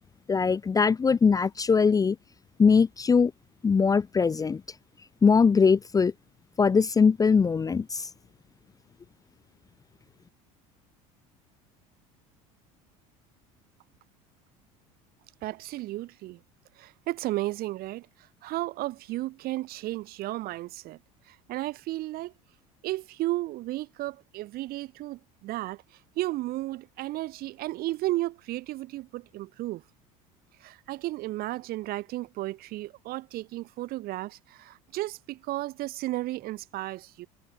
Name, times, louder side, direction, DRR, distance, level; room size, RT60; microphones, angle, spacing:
voice 1, 0.3-2.2 2.6-3.3 3.6-4.6 5.2-6.1 6.6-8.1, left 5 dB, 20° left, 0.6 m, -21 dB
voice 2, 15.4-16.4 16.8-18.1 18.4-21.0 21.3-22.3 22.8-25.8 26.2-29.8 30.6-37.3, right 17 dB, 60° right, 1.9 m, -33 dB
supercardioid pair, 90°, 18 cm